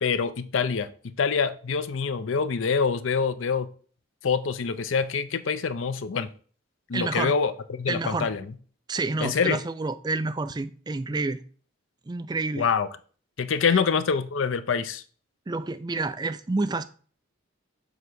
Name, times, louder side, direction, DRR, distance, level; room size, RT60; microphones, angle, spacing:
voice 1, 0.0-3.7 4.2-6.3 6.9-8.5 9.2-9.6 12.6-12.9 13.4-15.0, left 5 dB, 75° left, 0.5 m, -25 dB
voice 2, 6.9-7.3 7.9-8.3 8.9-11.4 12.1-12.7 13.7-13.9 15.5-16.8, right 3 dB, 20° right, 0.3 m, -29 dB
7.1 x 3.3 x 6.2 m
head